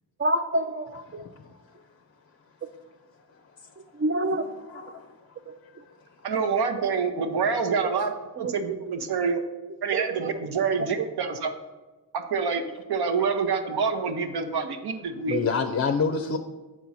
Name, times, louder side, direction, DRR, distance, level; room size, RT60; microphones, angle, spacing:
voice 1, 0.2-1.2 2.6-2.7 4.0-4.5 5.5-5.6 8.4-8.5 9.9-10.3 11.0-11.1 15.3-15.4, right 2 dB, 30° right, 8 dB, 0.4 m, -27 dB
voice 2, 1.1-1.5 3.3-3.4 4.7-5.1 15.3-16.4, left 5 dB, 35° left, 7 dB, 0.5 m, -28 dB
voice 3, 6.2-9.4 9.8-11.5 12.1-12.6 12.9-15.4, right 5 dB, 65° right, 7 dB, 0.9 m, -27 dB
7.4 x 4.5 x 4.2 m, 1.2 s
cardioid pair, 50°, 42 cm